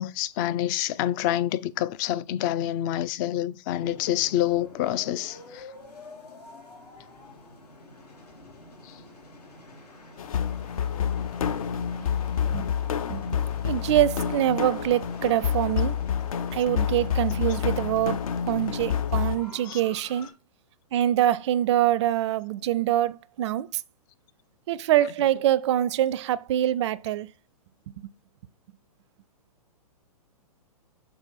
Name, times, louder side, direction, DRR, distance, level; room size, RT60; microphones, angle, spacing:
voice 1, 0.0-5.6 19.7-19.8, left 12 dB, 30° left, 0.4 m, -27 dB
sound 1, 3.8-20.3, left 2 dB, 80° left, 2.0 m, -47 dB
sound 2, 10.2-19.4, left 8 dB, 60° left, 0.7 m, -28 dB
voice 2, 13.1-13.4 13.6-16.0 16.5-20.3 20.9-23.8 24.7-27.3 27.9-28.1, right 12 dB, 45° right, 0.4 m, -25 dB
6.8 x 4.4 x 4.1 m
figure-of-eight pair, 120°, 20 cm